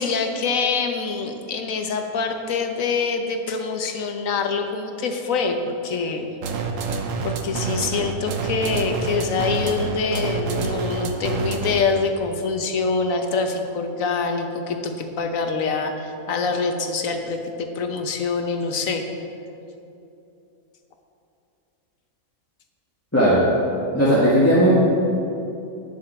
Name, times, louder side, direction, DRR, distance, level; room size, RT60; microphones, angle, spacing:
voice 1, 0.0-6.3 7.2-19.0, left 4 dB, 65° left, 5 dB, 1.3 m, -25 dB
sound 1, 6.4-12.0, right 4 dB, 65° right, 1.2 m, -27 dB
voice 2, 23.1-23.5 23.9-24.8, right 1 dB, 10° left, -9 dB, 1.5 m, -16 dB
11.0 x 9.3 x 4.4 m, 2.7 s
omnidirectional pair, 1.5 m